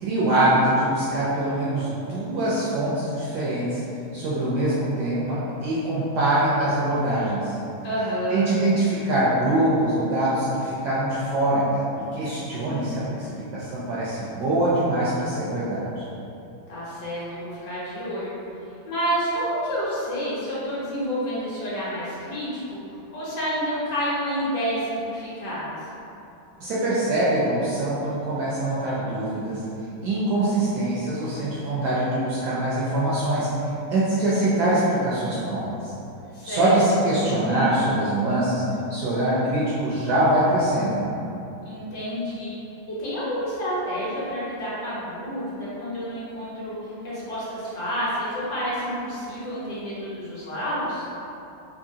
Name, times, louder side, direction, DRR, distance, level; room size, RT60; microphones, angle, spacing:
voice 1, 0.0-3.8 4.1-7.6 8.3-11.8 12.1-16.1 26.6-29.6 30.0-35.9 36.4-38.6 38.9-41.1, right 1 dB, 70° right, -8 dB, 1.0 m, -23 dB
voice 2, 7.8-8.5 16.7-18.3 18.9-22.8 23.1-25.8 36.3-36.8 41.6-42.5 42.9-51.0, equal, 60° left, -9 dB, 1.4 m, -29 dB
3.8 x 2.7 x 2.7 m, 2.8 s
omnidirectional pair, 2.2 m